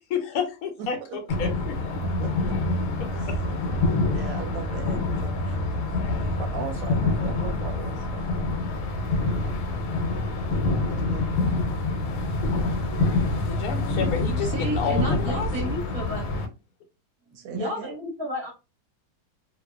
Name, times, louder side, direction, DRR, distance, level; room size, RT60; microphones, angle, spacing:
voice 1, 0.1-1.5 13.4-15.7, left 6 dB, 70° left, 4 dB, 1.0 m, -30 dB
voice 2, 0.8-1.2 2.2-2.3 3.1-3.4 4.1-5.7 6.4-8.3 9.2-9.6 10.9-11.5 17.3-17.9, right 7 dB, 70° right, 4 dB, 0.9 m, -38 dB
sound 1, 1.3-16.5, left 2 dB, 90° left, 1.2 m, -26 dB
voice 3, 14.4-16.2 17.5-18.5, equal, 25° right, -2 dB, 0.6 m, -31 dB
2.8 x 2.2 x 2.2 m, 0.28 s
omnidirectional pair, 1.7 m